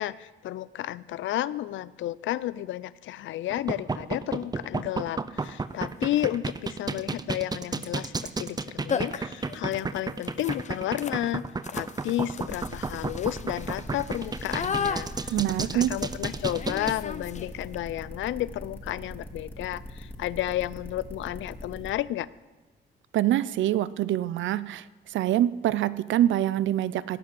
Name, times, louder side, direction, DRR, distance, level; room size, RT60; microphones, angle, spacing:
voice 1, 0.0-11.4 11.7-22.3, left 14 dB, 75° left, 19 dB, 0.5 m, -32 dB
sound 1, 3.5-16.9, right 4 dB, 20° right, 0.6 m, -31 dB
sound 2, 5.4-5.5 6.1-6.4 8.1-8.3 8.6-8.7 8.9-17.7, left 6 dB, 35° left, 0.7 m, -36 dB
sound 3, 12.4-21.9, left 1 dB, 10° left, 2.0 m, -41 dB
voice 2, 15.3-16.0 23.1-27.2, right 12 dB, 75° right, 18 dB, 0.5 m, -25 dB
17.5 x 5.9 x 7.6 m, 1.2 s
cardioid pair, 90°, 20 cm